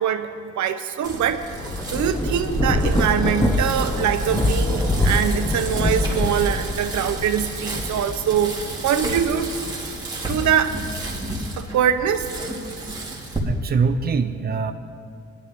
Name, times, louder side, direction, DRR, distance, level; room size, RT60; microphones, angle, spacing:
voice 1, 0.0-9.5 10.3-10.8 11.6-12.3, right 9 dB, 75° right, 7 dB, 0.9 m, -23 dB
Bicycle, 1.0-13.4, right 1 dB, 15° right, 2.5 m, -32 dB
Thunder / Rain, 1.3-10.2 10.7-12.1, left 1 dB, 10° left, 1.0 m, -25 dB
voice 2, 13.4-14.7, right 5 dB, 35° right, 6 dB, 0.8 m, -23 dB
21.5 x 11.5 x 3.7 m, 2.2 s
cardioid pair, 110°, 29 cm